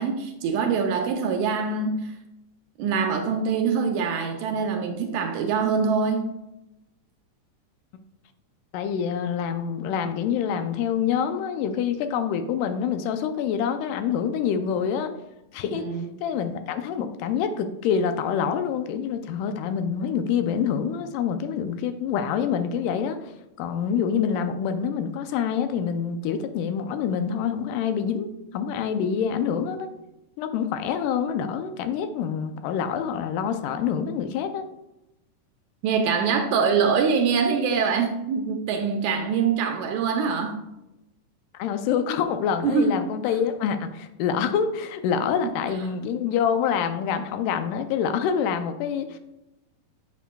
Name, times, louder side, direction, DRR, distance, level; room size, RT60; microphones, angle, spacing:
voice 1, 0.0-2.1 2.8-6.4 15.7-16.1 35.8-40.6 42.6-42.9 45.4-45.5, right 5 dB, 80° right, 4 dB, 1.8 m, -24 dB
voice 2, 8.7-15.1 15.5-15.9 16.2-23.3 23.6-29.9 30.4-34.7 41.6-49.2, left 7 dB, 85° left, 8 dB, 2.2 m, -26 dB
8.3 x 5.8 x 2.3 m, 0.91 s
omnidirectional pair, 3.7 m